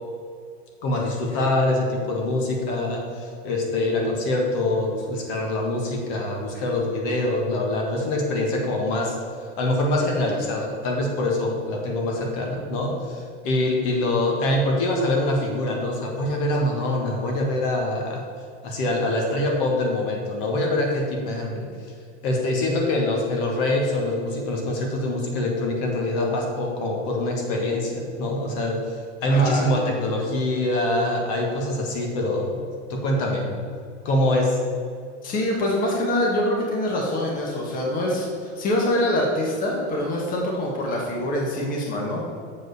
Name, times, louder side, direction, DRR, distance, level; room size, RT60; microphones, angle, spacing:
voice 1, 0.8-9.2 9.6-18.3 18.6-21.7 22.2-32.6 32.9-33.6 34.0-34.6, left 1 dB, 45° left, 1 dB, 1.6 m, -24 dB
voice 2, 29.2-29.7 35.2-38.3 38.6-42.2, left 1 dB, 25° left, -2 dB, 1.5 m, -24 dB
7.5 x 5.1 x 6.5 m, 2.2 s
supercardioid pair, 155°, 36 cm